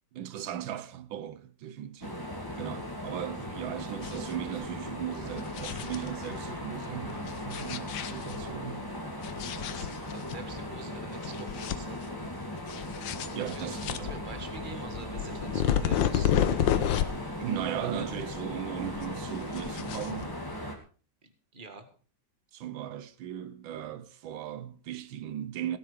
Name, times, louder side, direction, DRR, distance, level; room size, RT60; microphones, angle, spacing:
voice 1, 0.1-2.2 2.6-9.0 9.5-9.7 13.3-14.1 17.4-20.3 22.5-25.8, right 10 dB, 85° right, 1.6 m, -37 dB
sound 1, 2.0-20.7, left 1 dB, 10° left, 2.5 m, -38 dB
sound 2, 4.0-4.4 4.6-4.7 5.2-6.4 7.2-8.6 9.2-10.4 10.8-10.9 11.2-12.3 12.6-17.4 17.6-18.6 18.8-20.5, left 10 dB, 75° left, 1.6 m, -31 dB
voice 2, 9.6-12.2 13.3-16.6 17.8-18.3 21.2-21.9 23.7-23.9, right 3 dB, 25° right, 1.9 m, -46 dB
17.0 x 10.0 x 5.1 m
omnidirectional pair, 2.1 m